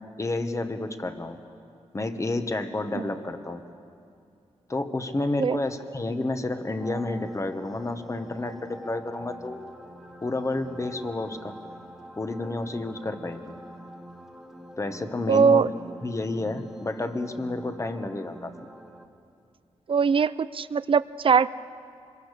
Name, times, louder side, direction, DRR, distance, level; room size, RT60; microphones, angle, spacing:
voice 1, 0.2-1.4 1.9-3.6 4.7-9.6 10.2-11.6 12.2-13.6 14.8-15.6 16.0-18.5, left 2 dB, 25° left, 8 dB, 1.5 m, -30 dB
sound 1, 6.8-19.1, equal, ahead, 1.7 m, -45 dB
voice 2, 15.3-15.7 19.9-21.5, right 6 dB, 50° right, 17 dB, 0.6 m, -21 dB
25.5 x 22.5 x 6.8 m, 2.5 s
cardioid pair, 80°, 12 cm